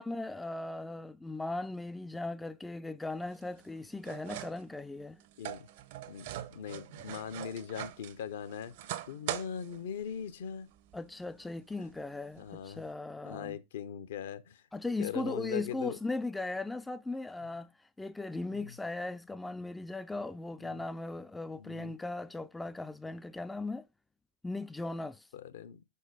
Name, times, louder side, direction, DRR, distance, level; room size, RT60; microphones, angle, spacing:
voice 1, 0.0-5.2 10.9-13.6 14.7-23.9 24.4-25.3, left 2 dB, 5° left, 0.4 m, -38 dB
sound 1, 3.1-12.9, right 13 dB, 50° right, 0.6 m, -45 dB
voice 2, 5.4-5.7 6.1-10.7 12.4-12.8 13.2-14.6 15.0-16.0 18.5-18.7 20.6-20.8 21.5-22.0 25.3-25.8, left 8 dB, 60° left, 0.7 m, -40 dB
5.6 x 5.5 x 5.0 m
figure-of-eight pair, 90°, 0 cm